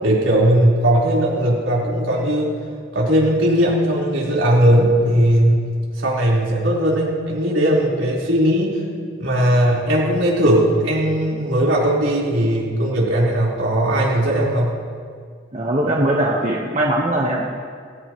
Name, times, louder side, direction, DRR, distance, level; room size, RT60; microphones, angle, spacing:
voice 1, 0.0-2.5 2.9-5.6 6.0-8.8 9.2-14.7, right 1 dB, 75° right, -5 dB, 4.4 m, -18 dB
voice 2, 15.5-17.5, right 1 dB, 35° right, -3 dB, 1.4 m, -20 dB
19.0 x 17.5 x 3.2 m, 2.1 s
head